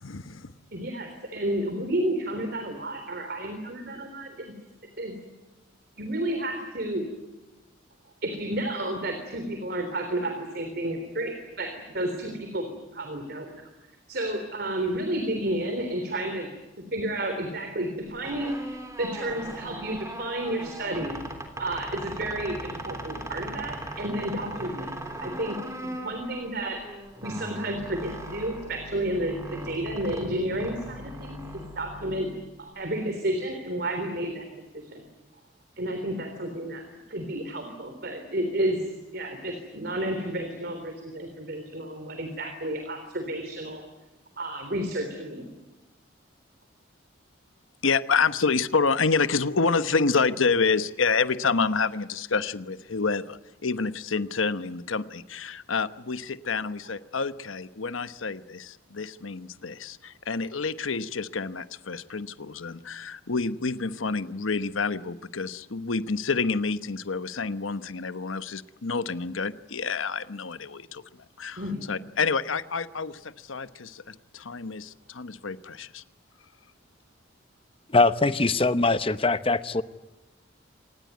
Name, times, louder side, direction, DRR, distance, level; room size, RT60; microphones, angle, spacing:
voice 1, 0.0-0.5 47.8-71.0 71.4-71.6 71.9-76.0, left 4 dB, 85° left, 13 dB, 1.0 m, -28 dB
voice 2, 0.7-4.5 5.0-5.2 6.0-7.1 8.2-12.7 12.9-13.6 14.1-16.5 16.8-18.6 19.0-21.2 21.6-24.9 25.2-26.8 27.2-32.3 32.6-34.5 34.7-35.0 35.8-38.8 39.1-43.8 44.4-45.5 71.6-71.9, right 1 dB, 55° right, 6 dB, 3.6 m, -31 dB
sound 1, 18.1-32.7, right 1 dB, 15° right, 3.4 m, -39 dB
voice 3, 77.9-79.8, left 3 dB, 30° left, 13 dB, 0.9 m, -22 dB
26.5 x 20.0 x 9.5 m, 1.1 s
head